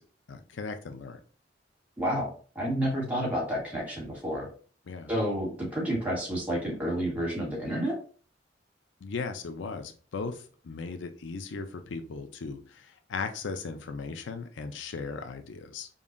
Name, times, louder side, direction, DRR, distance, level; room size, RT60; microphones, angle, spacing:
voice 1, 0.3-1.2 4.9-5.1 9.0-15.9, left 4 dB, 85° left, 7 dB, 0.5 m, -37 dB
voice 2, 2.0-4.5 5.1-8.0, equal, 10° right, -3 dB, 1.4 m, -30 dB
5.3 x 2.4 x 2.5 m, 0.40 s
head